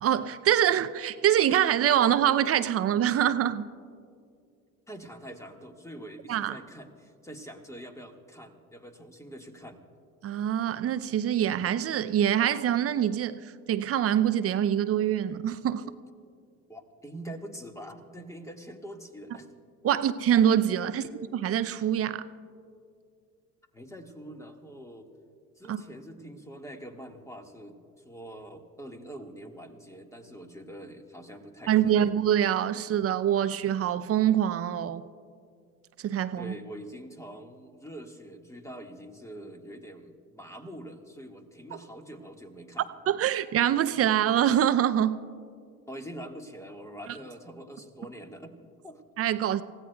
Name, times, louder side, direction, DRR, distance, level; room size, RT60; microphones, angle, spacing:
voice 1, 0.0-3.7 6.3-6.6 10.2-15.8 19.8-22.2 25.7-25.8 31.7-35.0 36.0-36.5 43.1-45.2 49.2-49.6, right 10 dB, 35° right, 0.6 m, -25 dB
voice 2, 4.9-9.8 16.7-19.5 19.9-20.0 23.7-25.1 25.6-27.8 28.0-32.1 36.4-42.9 45.9-49.0, right 1 dB, 5° left, 1.7 m, -44 dB
28.5 x 16.0 x 2.3 m
hypercardioid pair, 65°, 44 cm